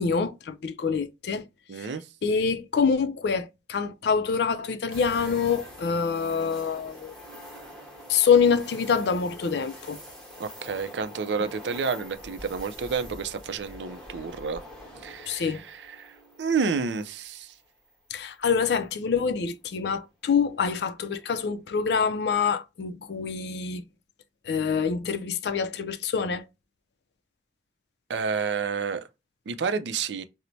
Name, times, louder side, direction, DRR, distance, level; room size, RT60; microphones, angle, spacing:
voice 1, 0.0-1.4 1.8-1.9 2.2-7.1 8.1-10.0 15.3-15.6 18.1-23.8 24.5-26.4, left 6 dB, 65° left, 0.4 m, -26 dB
voice 2, 1.7-2.1 10.4-14.6 15.0-17.5 28.1-29.0 29.5-30.2, right 5 dB, 75° right, 0.4 m, -30 dB
sound 1, 4.9-17.9 18.3-18.4 20.9-21.3, equal, 5° left, 1.2 m, -45 dB
4.3 x 2.0 x 2.6 m
head